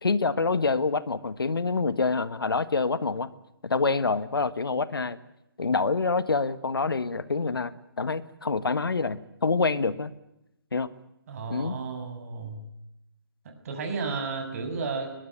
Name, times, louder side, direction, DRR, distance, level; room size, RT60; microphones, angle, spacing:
voice 1, 0.0-3.3 3.6-5.2 5.6-10.1 10.7-10.9 11.5-11.7, left 4 dB, 70° left, 15 dB, 1.5 m, -26 dB
voice 2, 11.3-12.6 13.6-15.1, right 4 dB, 40° right, 5 dB, 6.6 m, -33 dB
21.5 x 21.0 x 9.4 m, 0.87 s
figure-of-eight pair, 145°, 13 cm